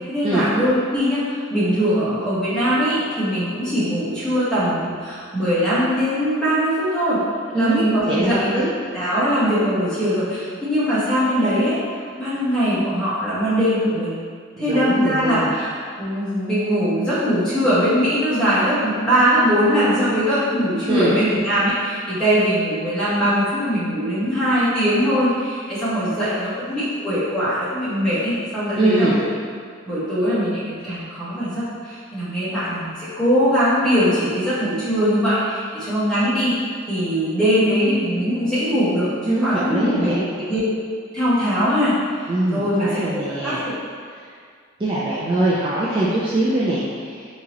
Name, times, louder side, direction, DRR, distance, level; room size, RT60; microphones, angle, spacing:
voice 1, 0.1-7.2 7.5-8.6 8.9-11.8 12.2-14.2 14.6-15.7 16.0-29.3 29.8-36.5 36.9-39.1 39.4-40.6 41.1-41.9 42.5-43.7, equal, 5° left, -13 dB, 1.2 m, -21 dB
voice 2, 7.5-8.7 14.6-15.5 20.9-21.2 28.8-29.2 39.2-40.3 42.3-43.6 44.2-44.3 44.8-47.3, right 1 dB, 25° right, -8 dB, 0.3 m, -22 dB
3.6 x 2.9 x 2.9 m, 2.1 s
head